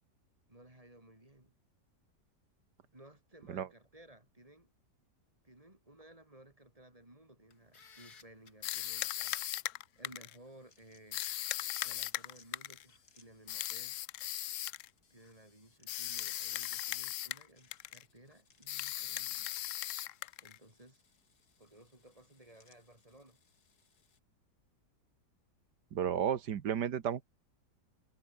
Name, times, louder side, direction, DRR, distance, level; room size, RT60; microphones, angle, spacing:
voice 1, 0.5-1.6 2.9-4.7 5.4-9.4 10.0-11.2 11.8-14.4 15.1-19.5 20.4-21.0 21.6-23.4, right 1 dB, 20° right, 4.3 m, -58 dB
sound 1, 7.5-8.5 10.4-14.1 14.4-14.5 15.0-24.2, left 6 dB, 60° left, 2.6 m, -58 dB
sound 2, 8.6-10.4 11.1-12.8 13.5-14.9 15.9-17.5 17.7-18.0 18.7-20.6, left 14 dB, 85° left, 0.6 m, -38 dB
voice 2, 25.9-27.3, right 9 dB, 70° right, 1.8 m, -33 dB
omnidirectional pair, 1.9 m